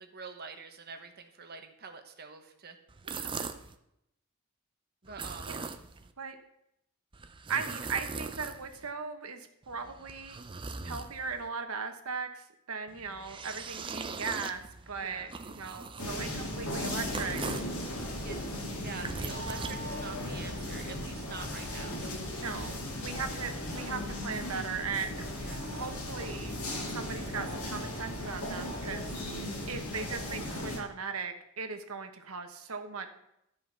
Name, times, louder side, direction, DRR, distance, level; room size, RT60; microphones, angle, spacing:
voice 1, 0.0-2.8 3.1-3.5 5.0-5.5 15.0-15.3 18.2-18.4 18.8-22.1 25.3-25.9, right 4 dB, 45° right, 6 dB, 1.1 m, -46 dB
sound 1, 2.9-3.8 5.1-6.1 7.1-8.9 9.6-11.5 12.9-17.8 18.7-20.4, right 4 dB, 20° right, 0.5 m, -41 dB
voice 2, 3.0-3.4 5.4-5.7 6.2-6.4 7.5-10.4 10.8-17.4 19.5-19.7 22.4-25.2 25.7-26.5 26.9-29.1 29.7-33.1, right 5 dB, 70° right, 7 dB, 1.2 m, -38 dB
sound 2, 16.0-30.8, left 1 dB, 70° left, 2.2 m, -37 dB
12.5 x 5.2 x 5.9 m, 0.79 s
head